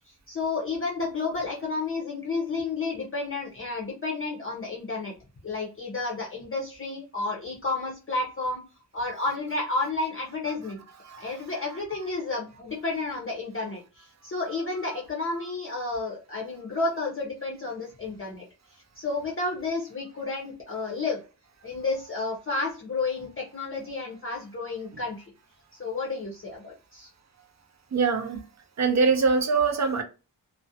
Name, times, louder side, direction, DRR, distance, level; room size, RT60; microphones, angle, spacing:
voice 1, 0.1-5.1 5.4-8.6 8.9-10.8 11.2-18.4 19.0-21.2 21.6-25.2 25.8-27.1, left 3 dB, 30° left, 0.6 m, -31 dB
voice 2, 27.9-28.4 28.8-30.0, right 4 dB, 45° right, 0.5 m, -23 dB
2.4 x 2.1 x 2.6 m
wide cardioid pair, 135°, 40 cm